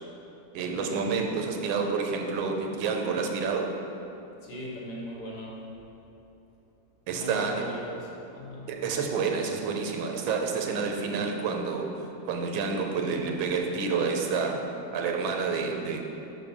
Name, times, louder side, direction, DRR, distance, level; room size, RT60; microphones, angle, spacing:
voice 1, 0.5-3.8 7.1-7.6 8.7-11.9 12.2-14.7 14.9-16.1, right 5 dB, 85° right, 3 dB, 1.5 m, -29 dB
voice 2, 4.4-5.6 7.1-8.9, equal, 60° left, -3 dB, 1.7 m, -39 dB
6.2 x 5.8 x 5.4 m, 2.9 s
omnidirectional pair, 2.1 m